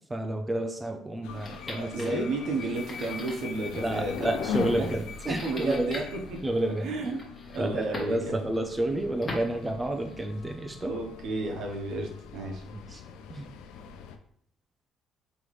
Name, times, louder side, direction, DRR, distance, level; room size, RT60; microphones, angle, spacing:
voice 1, 0.1-2.3 3.8-5.9 6.4-7.2 7.6-10.9 12.7-13.0 13.3-13.4, right 1 dB, 15° right, 4 dB, 0.4 m, -30 dB
sound 1, 1.2-14.2, left 6 dB, 85° left, 0.4 m, -40 dB
sound 2, 1.3-10.4, left 2 dB, 30° left, 1.3 m, -44 dB
voice 2, 1.7-4.3 4.8-4.9 5.4-6.0 6.3-6.4 6.8-7.2 7.5-8.5 10.9-12.6, right 2 dB, 70° right, 2 dB, 0.9 m, -32 dB
3.8 x 3.0 x 3.2 m, 0.64 s
cardioid pair, 90°, 0 cm